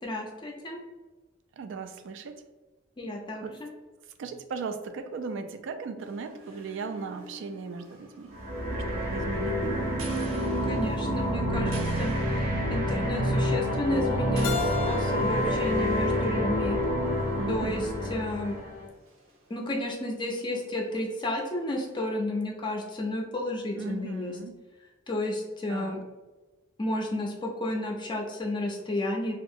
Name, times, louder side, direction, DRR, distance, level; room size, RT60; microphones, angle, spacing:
voice 1, 0.0-0.8 3.0-3.4 10.7-16.8 17.5-17.8 18.1-18.5 19.5-24.3 25.1-26.0 26.8-29.3, left 1 dB, 25° left, 0 dB, 0.4 m, -32 dB
voice 2, 1.6-2.4 3.4-3.6 4.2-8.3 8.7-9.9 17.4-17.8 23.8-24.6 25.7-26.0, right 4 dB, 65° right, 8 dB, 0.3 m, -37 dB
sound 1, 6.0-13.1 13.5-13.7 14.4-17.7 17.9-18.0 19.1-19.2 21.4-21.5, left 1 dB, 90° right, 0.7 m, -41 dB
sound 2, 8.3-18.9, equal, 40° right, 0.7 m, -28 dB
Keyboard (musical), 14.4-17.3, left 7 dB, 90° left, 0.4 m, -38 dB
2.8 x 2.4 x 2.6 m, 1.2 s
head